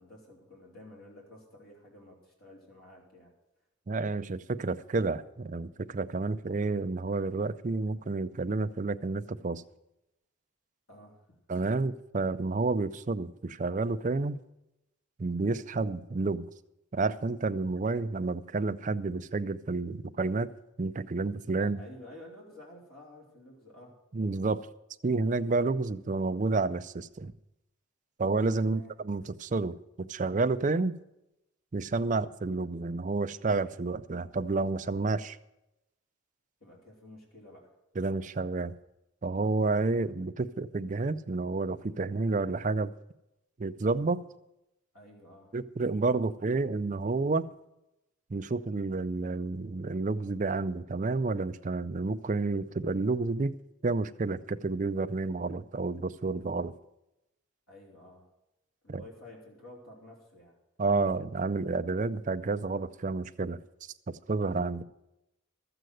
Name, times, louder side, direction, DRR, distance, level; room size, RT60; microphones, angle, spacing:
voice 1, 0.0-3.3 10.9-11.3 21.6-24.0 28.6-28.9 36.6-37.7 44.9-45.5 57.7-58.3 58.8-60.6, left 1 dB, 85° left, 3.2 m, -51 dB
voice 2, 3.9-9.6 11.5-14.4 15.2-16.5 16.9-20.5 20.8-21.8 24.1-24.6 25.0-27.3 28.2-31.0 31.7-35.4 38.0-38.7 39.2-42.9 43.6-44.2 45.5-47.5 48.3-53.5 53.8-56.7 58.9-59.0 60.8-63.6 64.1-64.8, right 3 dB, 35° right, 0.4 m, -30 dB
13.5 x 7.9 x 7.7 m
head